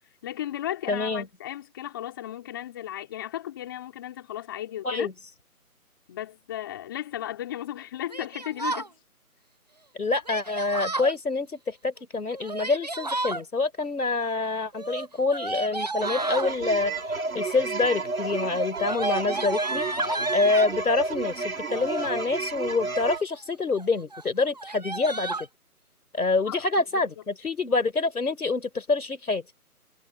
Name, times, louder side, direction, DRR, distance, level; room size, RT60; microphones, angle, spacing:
voice 1, 0.2-5.1 6.1-8.9 26.5-26.6, left 12 dB, 15° left, 3.1 m, -35 dB
voice 2, 0.9-1.3 4.8-5.1 9.9-16.9 17.3-19.9 20.3-25.5 26.1-29.4, left 3 dB, 70° left, 3.8 m, -26 dB
Yell, 8.1-8.9 10.2-11.1 12.3-13.4 14.7-16.5 17.4-17.8 18.1-20.7 21.7-22.3 22.8-23.3 23.7-23.9 24.1-24.2 24.5-25.5, right 2 dB, 25° right, 1.0 m, -33 dB
sound 1, 16.0-23.2, right 3 dB, 65° right, 2.2 m, -31 dB
figure-of-eight pair, 170°, 46 cm